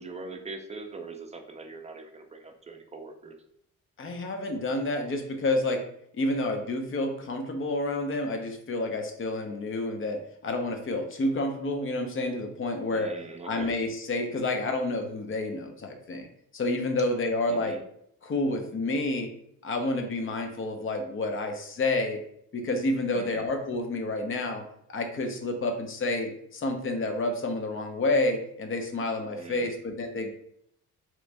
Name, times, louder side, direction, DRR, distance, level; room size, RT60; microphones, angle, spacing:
voice 1, 0.0-3.4 12.9-13.8 17.5-17.8 23.1-23.5 29.3-29.8, right 3 dB, 20° right, 4 dB, 0.5 m, -42 dB
voice 2, 4.0-5.8 6.1-13.1 13.4-16.3 16.5-17.8 18.2-19.3 19.6-22.2 22.5-24.6 24.9-30.3, left 2 dB, 45° left, 4 dB, 0.7 m, -29 dB
3.0 x 2.5 x 3.3 m, 0.71 s
cardioid pair, 90°, 30 cm